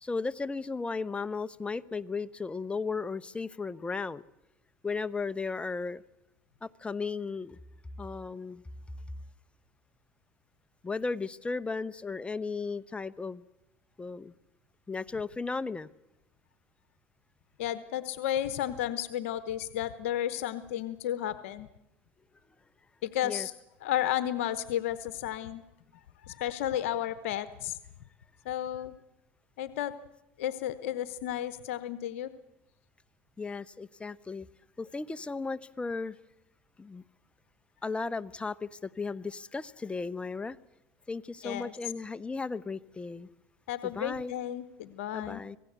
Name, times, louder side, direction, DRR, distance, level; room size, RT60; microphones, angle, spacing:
voice 1, 0.0-4.2 4.8-6.0 6.6-7.6 8.0-8.6 10.8-13.4 14.0-14.3 14.9-15.9 23.2-23.5 33.4-34.5 34.8-36.2 36.8-37.0 37.8-40.6 41.1-43.3 43.8-44.3 45.1-45.6, left 4 dB, 15° left, 14 dB, 0.9 m, -35 dB
voice 2, 17.6-21.7 23.0-23.5 23.8-25.6 26.3-27.8 28.4-28.9 29.6-29.9 30.4-32.3 41.4-41.7 43.7-45.4, left 11 dB, 85° left, 14 dB, 1.0 m, -32 dB
26.0 x 17.5 x 8.1 m, 0.89 s
supercardioid pair, 90°, 7 cm